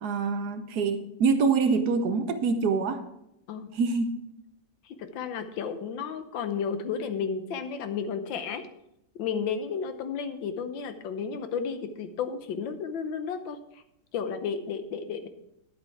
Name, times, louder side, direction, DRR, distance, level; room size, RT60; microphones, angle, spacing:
voice 1, 0.0-3.0 3.7-4.2, right 4 dB, 65° right, 9 dB, 1.2 m, -25 dB
voice 2, 4.8-8.6 9.1-13.8 14.1-15.3, left 6 dB, 85° left, 9 dB, 1.6 m, -32 dB
10.5 x 8.0 x 4.6 m, 0.82 s
omnidirectional pair, 2.0 m